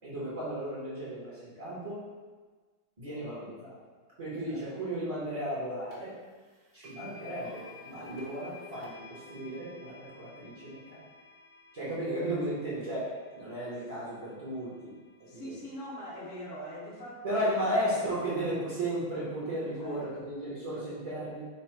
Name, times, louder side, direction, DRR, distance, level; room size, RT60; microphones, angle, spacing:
voice 1, 0.0-2.0 3.0-3.7 4.2-6.1 6.7-11.0 11.7-14.9 15.2-15.5 17.2-21.4, right 1 dB, 35° right, -10 dB, 0.5 m, -34 dB
sound 1, 5.9-6.0 6.8-14.9, left 2 dB, 60° right, 1.2 m, -52 dB
voice 2, 15.2-17.8 19.8-20.3, equal, 70° left, -5 dB, 0.6 m, -43 dB
3.9 x 2.2 x 4.4 m, 1.4 s
omnidirectional pair, 2.1 m